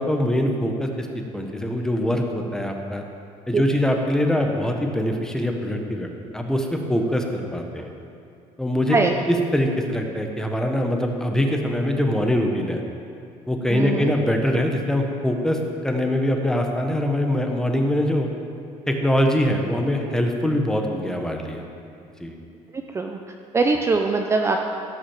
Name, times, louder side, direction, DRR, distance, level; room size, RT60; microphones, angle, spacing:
voice 1, 0.0-3.0 3.5-6.1 6.3-7.9 8.6-9.0 9.3-12.8 13.5-18.3 18.9-21.6 22.2-22.4, left 1 dB, 5° left, 2 dB, 1.3 m, -23 dB
voice 2, 13.7-14.1 22.7-23.2 23.5-24.7, right 4 dB, 20° right, 3 dB, 0.7 m, -22 dB
16.0 x 6.2 x 7.4 m, 2.5 s
cardioid pair, 125°, 12 cm